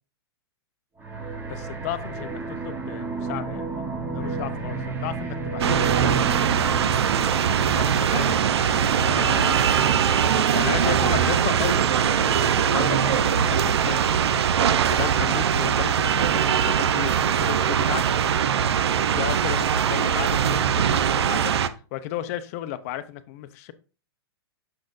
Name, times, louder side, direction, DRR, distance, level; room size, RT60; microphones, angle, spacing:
sound 1, 1.0-11.6, right 4 dB, 10° right, 1.0 m, -32 dB
voice 1, 1.5-6.8 7.6-9.6 10.5-14.0 14.6-18.1 19.1-21.5 21.9-23.7, left 12 dB, 35° left, 12 dB, 0.6 m, -34 dB
sound 2, 5.6-21.7, right 8 dB, 80° right, 0.6 m, -21 dB
6.4 x 6.3 x 2.5 m, 0.35 s
hypercardioid pair, 155°, 14 cm